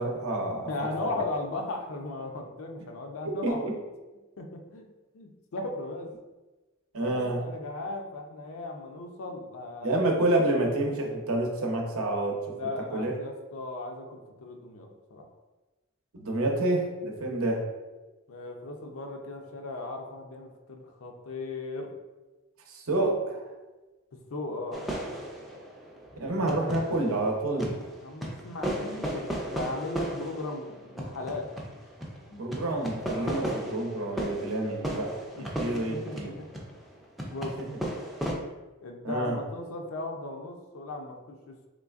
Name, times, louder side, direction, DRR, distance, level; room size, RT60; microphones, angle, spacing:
voice 1, 0.0-0.7 1.2-1.3 3.4-3.7 6.9-7.4 9.8-12.4 12.6-13.2 16.1-17.7 22.7-23.4 26.2-27.7 32.3-36.3 37.6-37.8 39.0-39.4, right 2 dB, 75° right, 1 dB, 0.7 m, -28 dB
voice 2, 0.7-3.7 4.4-4.9 5.1-6.1 6.9-9.9 12.5-15.3 18.3-21.9 24.3-24.8 28.0-31.5 33.1-33.6 35.4-35.5 35.9-36.5 37.3-37.6 38.8-41.7, left 2 dB, 70° left, 3 dB, 0.5 m, -37 dB
sound 1, 24.7-27.2 27.6-38.3, equal, ahead, 0.4 m, -35 dB
3.7 x 3.1 x 2.4 m, 1.2 s
head